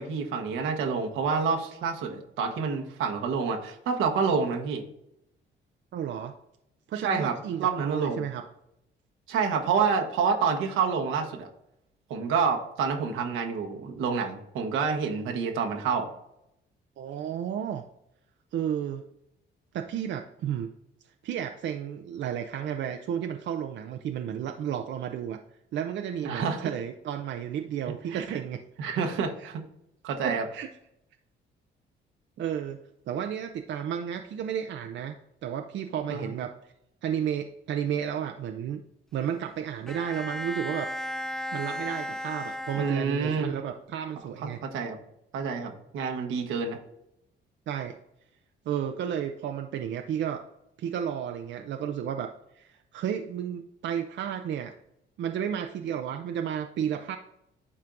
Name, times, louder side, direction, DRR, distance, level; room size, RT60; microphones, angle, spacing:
voice 1, 0.0-4.8 7.0-7.3 7.6-8.3 9.3-11.5 12.1-16.1 26.2-26.7 28.1-28.4 28.8-29.6 30.0-30.4 36.1-36.3 42.8-43.5 44.4-45.0 45.3-46.8, right 5 dB, 90° right, 3 dB, 1.2 m, -28 dB
voice 2, 5.9-6.3 6.9-8.4 17.0-17.8 18.5-19.0 19.7-20.7 21.2-25.4 25.7-28.6 29.4-29.5 30.2-30.7 32.4-32.8 33.1-35.2 35.4-36.5 37.0-38.8 39.1-40.9 41.5-44.6 47.7-48.0 48.7-50.4 50.8-54.7 55.2-57.2, right 9 dB, 70° right, 5 dB, 0.5 m, -32 dB
Bowed string instrument, 39.9-43.5, equal, ahead, 0.4 m, -35 dB
11.0 x 4.4 x 2.6 m, 0.80 s
cardioid pair, 90°, 20 cm